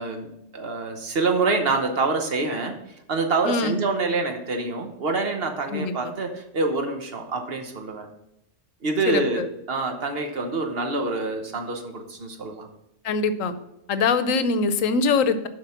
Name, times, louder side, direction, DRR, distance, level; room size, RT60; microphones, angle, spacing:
voice 1, 0.0-2.7 3.1-8.1 8.8-9.4 9.7-12.7, right 3 dB, 50° right, 4 dB, 1.1 m, -26 dB
voice 2, 3.4-3.8 5.7-6.1 9.1-9.5 13.0-13.5 13.9-15.5, left 4 dB, 90° left, 12 dB, 1.1 m, -23 dB
7.5 x 5.0 x 5.7 m, 0.85 s
omnidirectional pair, 1.3 m